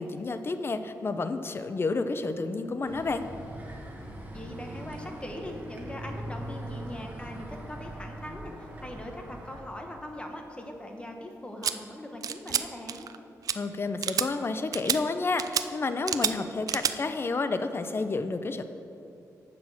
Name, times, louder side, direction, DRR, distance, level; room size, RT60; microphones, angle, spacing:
voice 1, 0.0-3.3 13.5-18.6, left 3 dB, 40° left, 10 dB, 0.6 m, -30 dB
sound 1, 2.8-9.6, right 1 dB, 25° right, 1.7 m, -41 dB
voice 2, 4.3-13.1, left 1 dB, 15° left, 3 dB, 1.1 m, -41 dB
sound 2, 11.6-11.7 12.2-12.6 12.9-13.2 13.4-13.5 14.0-14.3 14.7-15.0 15.4-15.6 16.1-16.3 16.7-16.9, right 8 dB, 70° right, 0.4 m, -28 dB
7.6 x 6.0 x 7.1 m, 2.7 s
cardioid pair, 90°, 6 cm